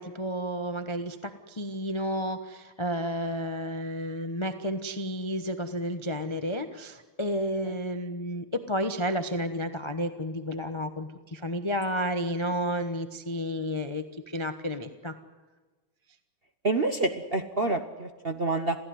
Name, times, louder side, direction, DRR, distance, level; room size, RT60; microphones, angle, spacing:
voice 1, 0.0-15.1, equal, 25° left, 7 dB, 0.6 m, -31 dB
voice 2, 16.6-18.8, right 2 dB, 40° right, 6 dB, 0.9 m, -27 dB
27.5 x 16.0 x 9.6 m, 1.3 s
omnidirectional pair, 2.3 m